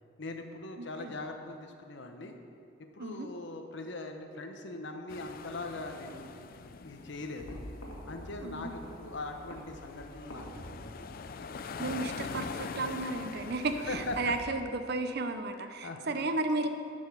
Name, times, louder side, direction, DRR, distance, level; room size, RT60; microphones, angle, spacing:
voice 1, 0.2-2.3 2.9-6.5 6.8-7.6 8.1-11.1 13.9-14.2 15.8-16.0, left 2 dB, 65° left, 5 dB, 1.0 m, -41 dB
voice 2, 0.8-1.1 3.0-3.3 8.4-8.7 11.8-16.7, right 2 dB, 55° right, 8 dB, 0.7 m, -33 dB
sound 1, 5.1-14.4, left 5 dB, 50° left, 0.4 m, -44 dB
sound 2, 7.4-14.6, equal, 80° left, 1.8 m, -48 dB
11.5 x 5.4 x 6.8 m, 2.6 s
head